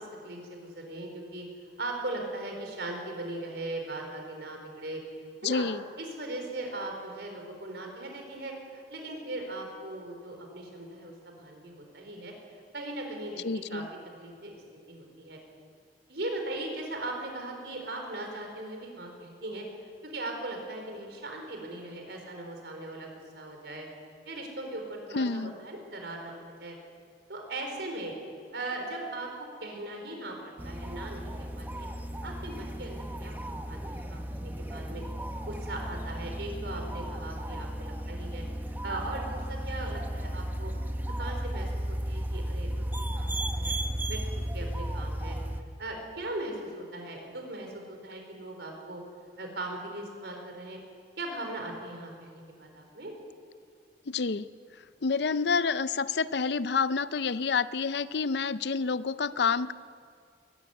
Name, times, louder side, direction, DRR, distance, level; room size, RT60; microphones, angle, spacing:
voice 1, 0.0-1.4 1.8-5.0 5.4-5.6 6.0-13.4 13.7-13.8 14.2-14.6 14.9-15.4 16.1-23.1 23.3-23.9 24.2-26.8 27.3-28.1 28.5-29.3 29.6-31.9 32.2-35.0 35.4-38.4 38.8-40.7 41.2-43.7 44.1-44.2 44.5-45.4 45.8-49.0 49.4-50.8 51.2-53.1, right 2 dB, 75° right, 2 dB, 4.6 m, -39 dB
voice 2, 5.4-5.8 13.4-13.9 25.1-25.5 54.1-54.5 55.0-59.7, left 5 dB, 70° left, 15 dB, 0.6 m, -28 dB
sound 1, 30.6-45.6, right 1 dB, 10° right, 1.0 m, -34 dB
21.5 x 14.0 x 9.6 m, 2.2 s
head